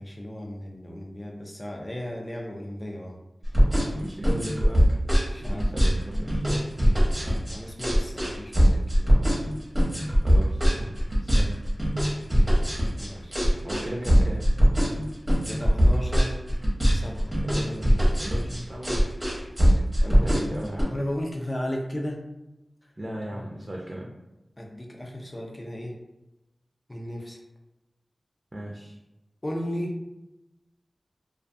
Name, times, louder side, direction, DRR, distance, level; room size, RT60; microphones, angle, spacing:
voice 1, 0.0-3.2 3.6-4.0 5.3-5.7 7.1-9.4 13.0-13.4 15.5-16.4 16.9-17.3 20.0-20.5 20.9-22.2 23.3-23.4 24.6-26.0 26.9-27.4 29.4-29.9, equal, 30° left, 0 dB, 0.5 m, -35 dB
sound 1, 3.4-20.8, equal, 15° right, 0.8 m, -21 dB
voice 2, 4.0-4.9 5.3-6.7 10.1-10.9 11.2-11.6 13.6-14.5 17.4-17.9 18.2-19.0 20.1-20.9 23.0-24.1 28.5-29.0, equal, 35° right, -2 dB, 0.4 m, -36 dB
2.3 x 2.3 x 2.5 m, 0.96 s
wide cardioid pair, 60°, 0 cm